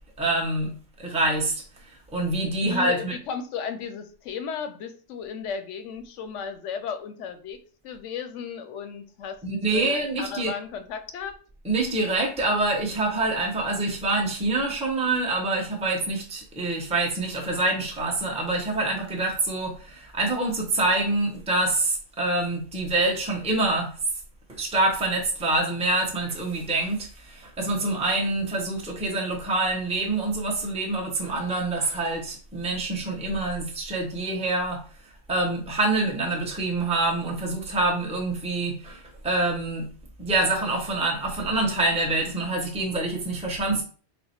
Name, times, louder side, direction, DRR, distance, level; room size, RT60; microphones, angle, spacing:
voice 1, 0.2-0.7 1.0-3.1 9.4-10.5 11.6-23.9 24.5-34.8 35.3-39.9 40.2-43.8, right 2 dB, 5° right, 0.7 m, -26 dB
voice 2, 2.6-7.6 7.8-9.4 9.7-11.4, left 6 dB, 75° left, 0.9 m, -35 dB
4.2 x 2.1 x 4.2 m
omnidirectional pair, 1.3 m